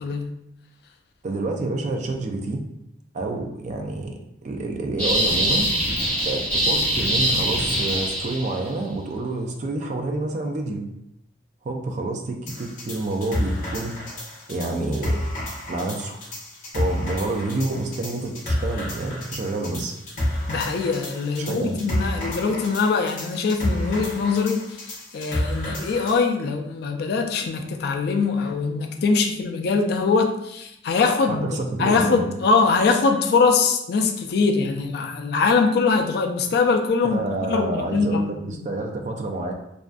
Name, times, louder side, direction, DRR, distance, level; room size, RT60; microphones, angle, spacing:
voice 1, 0.0-0.3 20.5-31.5 31.8-37.2 37.5-38.7, left 4 dB, 60° left, 4 dB, 0.3 m, -22 dB
voice 2, 1.2-2.6 3.1-5.7 6.3-10.8 11.6-15.2 15.7-16.2 16.7-19.9 21.4-21.8 31.3-32.3 37.0-39.5, right 2 dB, 45° right, 3 dB, 0.3 m, -28 dB
sound 1, 5.0-8.7, right 1 dB, 10° left, 1.1 m, -23 dB
sound 2, 12.5-26.2, left 1 dB, 45° left, 0.7 m, -30 dB
2.4 x 2.2 x 2.4 m, 0.80 s
head